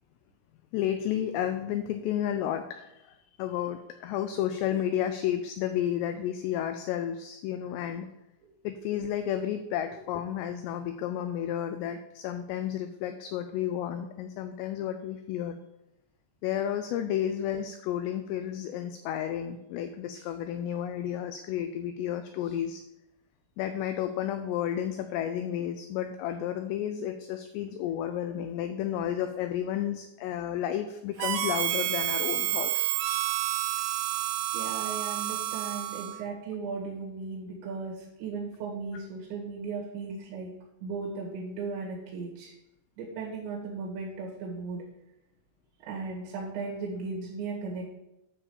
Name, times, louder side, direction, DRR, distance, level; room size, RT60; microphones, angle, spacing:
voice 1, 0.7-8.1 8.6-15.6 16.4-22.8 23.6-32.9, left 10 dB, 85° left, 8 dB, 2.4 m, -32 dB
Harmonica, 31.2-36.2, right 14 dB, 85° right, 2.4 m, -30 dB
voice 2, 34.5-40.5 40.8-42.5 43.0-44.8 45.8-47.9, right 4 dB, 70° right, -2 dB, 3.7 m, -36 dB
9.7 x 4.2 x 7.0 m, 0.89 s
omnidirectional pair, 5.5 m